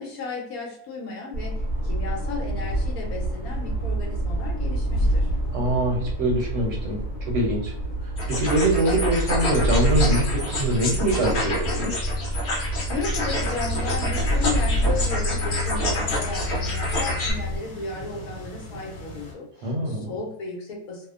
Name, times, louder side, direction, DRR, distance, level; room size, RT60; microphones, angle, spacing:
voice 1, 0.0-1.6 1.8-5.3 12.9-21.1, left 4 dB, 70° left, -1 dB, 1.1 m, -34 dB
sound 1, 1.3-17.6, equal, 30° left, 1.0 m, -27 dB
voice 2, 5.5-7.7 8.3-12.0 19.6-20.1, right 1 dB, 65° right, -1 dB, 0.9 m, -24 dB
sound 2, 8.2-17.3, left 1 dB, 50° left, 1.0 m, -29 dB
sound 3, 13.1-19.3, right 1 dB, 85° left, 1.2 m, -40 dB
2.8 x 2.0 x 2.3 m, 0.72 s
omnidirectional pair, 1.6 m